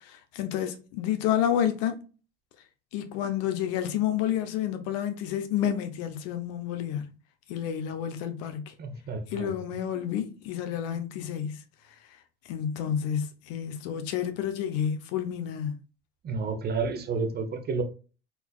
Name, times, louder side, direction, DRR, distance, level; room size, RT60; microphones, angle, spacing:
voice 1, 0.1-2.0 2.9-7.0 7.5-8.7 9.3-11.6 12.5-15.7, left 9 dB, 55° left, 1.0 m, -30 dB
voice 2, 8.8-9.5 16.2-17.8, right 4 dB, 35° right, 1.1 m, -30 dB
4.3 x 3.9 x 2.4 m
figure-of-eight pair, 70°, 29 cm